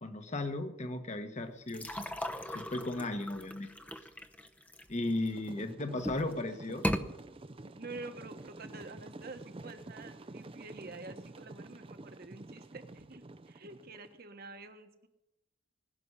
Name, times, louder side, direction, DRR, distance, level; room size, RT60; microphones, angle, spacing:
voice 1, 0.0-1.9 2.5-3.7 4.9-6.8, left 2 dB, 35° left, 7 dB, 1.3 m, -36 dB
sound 1, 1.7-5.5 6.0-6.3 6.7-7.0, equal, 5° left, 0.7 m, -37 dB
sound 2, 5.1-14.2, right 2 dB, 25° right, 0.5 m, -49 dB
voice 2, 7.8-15.1, right 3 dB, 50° right, 7 dB, 1.3 m, -48 dB
20.5 x 7.0 x 9.8 m, 0.94 s
head